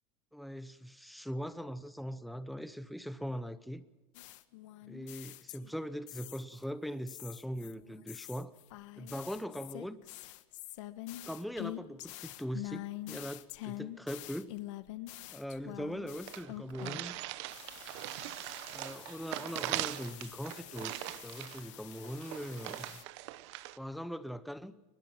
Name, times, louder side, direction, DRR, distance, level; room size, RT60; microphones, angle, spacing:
voice 1, 0.3-3.8 4.9-8.5 9.0-10.0 11.3-14.5 15.3-17.2 18.7-23.0 23.7-24.7, equal, ahead, 0.7 m, -41 dB
sound 1, 4.1-6.6 7.1-17.2 17.5-23.0, left 17 dB, 90° left, 1.3 m, -46 dB
sound 2, 15.6-15.7 15.9-16.0 16.3-23.8, right 18 dB, 70° right, 0.9 m, -41 dB
23.5 x 20.5 x 5.9 m
cardioid pair, 170°, 15 cm